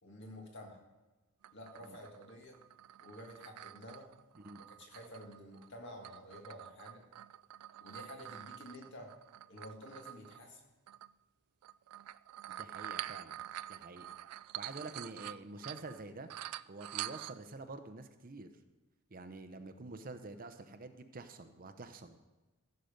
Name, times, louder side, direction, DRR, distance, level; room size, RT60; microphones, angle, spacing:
voice 1, 0.0-0.8 1.5-2.6 3.0-4.1 4.8-7.0 7.8-9.1 9.5-10.6, equal, 55° left, 1 dB, 2.1 m, -50 dB
sound 1, 1.4-5.7 6.0-10.4 10.9-11.1 11.6-16.0 16.3-17.5, right 13 dB, 85° right, 0.3 m, -47 dB
voice 2, 12.5-13.4 13.7-14.1 14.6-16.3 16.7-18.5 19.1-22.2, right 3 dB, 40° right, 8 dB, 0.7 m, -47 dB
14.5 x 6.7 x 5.1 m, 1.2 s
head